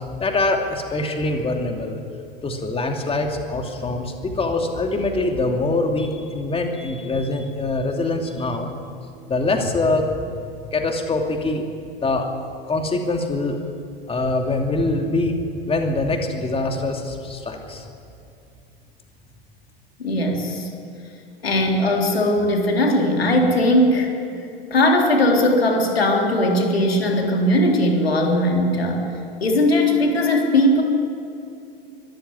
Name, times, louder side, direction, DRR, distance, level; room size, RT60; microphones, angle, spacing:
voice 1, 0.2-2.0 2.4-8.7 9.3-10.1 10.7-11.6 12.0-13.6 14.1-17.8, left 2 dB, 20° left, 3 dB, 2.7 m, -24 dB
voice 2, 20.0-20.7 21.4-24.1 24.7-29.1 29.4-30.8, left 1 dB, 85° left, 1 dB, 3.7 m, -19 dB
24.0 x 14.5 x 9.7 m, 2.6 s
figure-of-eight pair, 80°, 30 cm